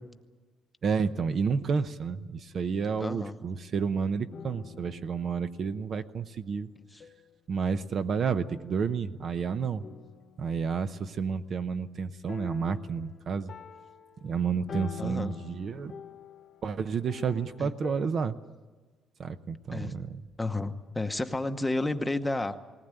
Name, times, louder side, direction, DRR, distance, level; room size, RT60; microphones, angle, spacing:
voice 1, 0.8-6.7 7.5-9.8 10.4-13.5 14.2-15.9 16.6-18.3 19.2-20.2, right 6 dB, 40° right, 11 dB, 0.7 m, -30 dB
voice 2, 3.0-3.3 6.9-7.0 15.0-15.3 17.6-17.7 19.7-19.9 20.4-22.6, left 2 dB, 10° left, 7 dB, 0.9 m, -31 dB
sound 1, 4.3-6.1 7.0-7.3 8.5-9.3 9.8-11.0 12.3-18.1, left 7 dB, 35° left, 0.9 m, -46 dB
20.0 x 18.5 x 9.0 m, 1.4 s
cardioid pair, 160°, 0 cm